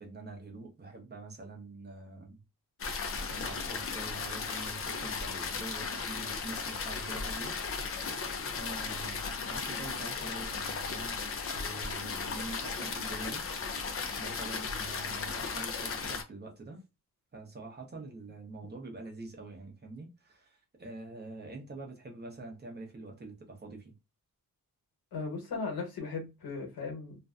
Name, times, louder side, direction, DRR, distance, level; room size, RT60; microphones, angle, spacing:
voice 1, 0.0-2.4 3.2-8.2 8.5-11.2 11.5-13.4 14.2-16.8 17.3-23.9, right 2 dB, 30° right, 0.7 m, -45 dB
sound 1, 2.8-16.2, left 5 dB, 40° left, 0.4 m, -36 dB
voice 2, 25.1-27.2, left 4 dB, 85° left, 1.2 m, -37 dB
2.5 x 2.1 x 2.4 m
wide cardioid pair, 155°, 35 cm